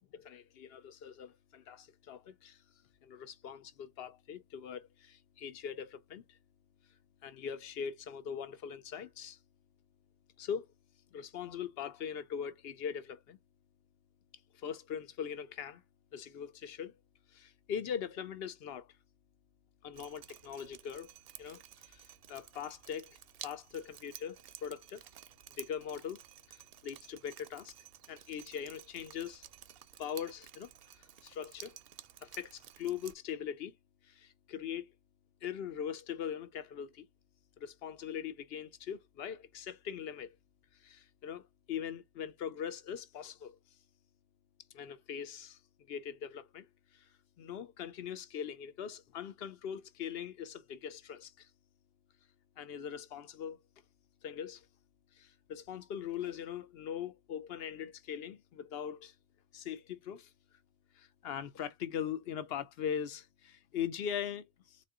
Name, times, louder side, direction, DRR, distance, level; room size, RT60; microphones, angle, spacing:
voice 1, 0.1-2.6 3.0-6.4 7.2-9.4 10.4-10.7 11.1-13.4 14.5-15.8 16.1-16.9 17.3-18.9 19.8-21.1 21.4-23.2 23.4-24.4 24.6-25.0 25.6-26.2 26.5-27.7 28.1-29.5 30.0-30.7 31.2-31.8 32.2-33.7 34.1-34.9 35.4-37.1 37.6-40.4 40.8-43.6 44.7-45.6 45.9-46.7 46.9-47.0 47.4-51.5 52.6-53.6 54.2-54.7 55.2-59.1 59.5-60.3 61.0-64.8, left 8 dB, 65° left, 0.8 m, -41 dB
Drip, 19.9-33.1, right 11 dB, 65° right, 0.7 m, -53 dB
4.1 x 2.7 x 3.6 m
omnidirectional pair, 1.1 m